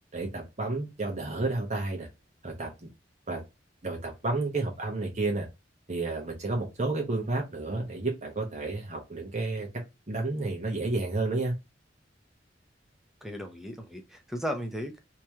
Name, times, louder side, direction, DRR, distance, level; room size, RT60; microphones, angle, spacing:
voice 1, 0.1-2.1 2.4-2.9 3.3-3.4 3.8-5.5 5.9-9.7 10.1-11.5, right 2 dB, 40° right, 1.0 m, -31 dB
voice 2, 13.2-15.1, equal, ahead, 0.7 m, -36 dB
3.0 x 2.9 x 3.5 m
head